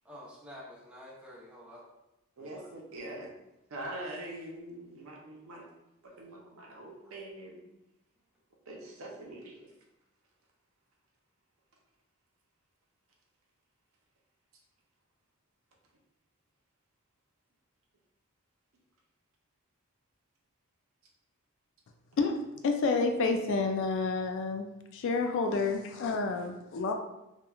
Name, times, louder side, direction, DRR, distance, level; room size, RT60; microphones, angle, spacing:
voice 1, 0.0-1.8 2.4-2.6 5.5-5.6 7.0-7.1, left 1 dB, 5° right, -5 dB, 0.6 m, -49 dB
voice 2, 2.4-3.3 3.7-5.7 6.0-7.6 8.7-9.7, right 1 dB, 70° right, -1 dB, 0.6 m, -43 dB
voice 3, 22.6-24.7 24.9-26.9, left 4 dB, 60° left, 5 dB, 0.3 m, -29 dB
2.9 x 2.2 x 2.3 m, 0.92 s
head